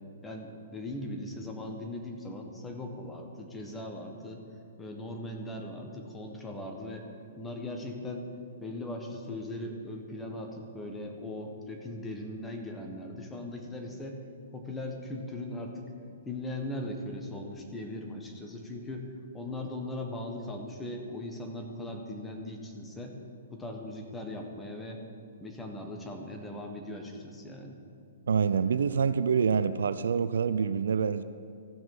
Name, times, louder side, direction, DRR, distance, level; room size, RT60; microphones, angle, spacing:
voice 1, 0.2-4.4 4.8-7.1 7.4-8.2 8.6-14.2 14.5-15.9 16.2-23.2 23.5-25.0 25.4-27.8, left 1 dB, 10° left, 2 dB, 1.3 m, -39 dB
voice 2, 28.3-31.2, right 6 dB, 70° right, 13 dB, 0.4 m, -26 dB
15.0 x 5.9 x 5.5 m, 2.4 s
figure-of-eight pair, 120°, 0 cm